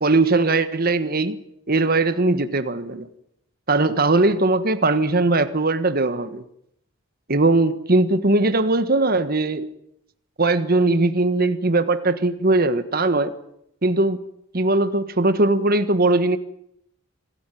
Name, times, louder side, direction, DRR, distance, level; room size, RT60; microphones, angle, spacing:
voice 1, 0.0-1.4 1.7-3.1 3.7-6.4 7.3-9.7 10.4-13.3 13.8-14.2 14.5-16.4, right 2 dB, 45° right, 10 dB, 1.5 m, -20 dB
26.0 x 17.5 x 9.4 m, 0.76 s
head